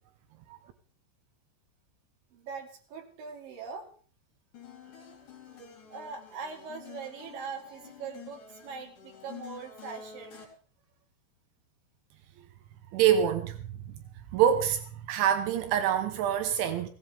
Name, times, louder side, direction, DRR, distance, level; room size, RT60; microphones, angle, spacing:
voice 1, 2.3-3.9 5.9-10.5, right 5 dB, 55° right, 3.7 m, -41 dB
sound 1, 4.5-10.5, left 7 dB, 50° left, 5.4 m, -49 dB
voice 2, 12.9-14.0 14.3-16.9, right 9 dB, 80° right, 3.3 m, -26 dB
18.5 x 16.5 x 3.4 m
omnidirectional pair, 5.4 m